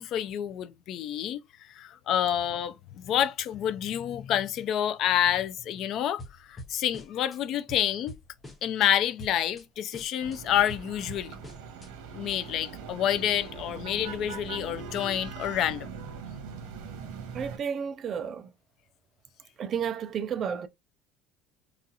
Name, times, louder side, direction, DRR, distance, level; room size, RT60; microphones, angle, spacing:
voice 1, 0.0-1.4 1.7-6.2 6.5-8.2 8.6-11.4 12.1-15.9, left 10 dB, 40° left, 0.4 m, -28 dB
sound 1, 6.2-7.4 7.7-8.9 9.2-9.6 9.9-11.9, left 1 dB, 10° left, 0.8 m, -45 dB
sound 2, 10.2-17.6, right 6 dB, 85° right, 1.1 m, -41 dB
voice 2, 17.3-18.5 19.6-20.7, right 7 dB, 30° right, 0.4 m, -32 dB
4.0 x 2.4 x 2.7 m
cardioid pair, 180°, 0 cm